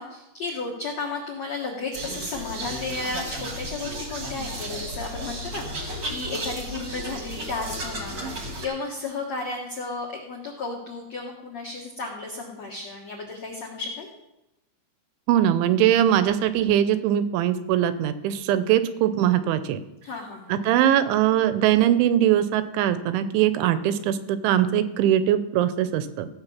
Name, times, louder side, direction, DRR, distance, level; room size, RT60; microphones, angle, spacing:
voice 1, 0.0-14.1 20.0-20.5, left 3 dB, 80° left, -1 dB, 1.5 m, -33 dB
sound 1, 1.9-8.7, right 1 dB, 55° right, 1.2 m, -34 dB
voice 2, 15.3-19.8 20.5-26.3, right 11 dB, 80° right, 12 dB, 3.0 m, -21 dB
15.5 x 7.3 x 5.7 m, 0.95 s
omnidirectional pair, 5.4 m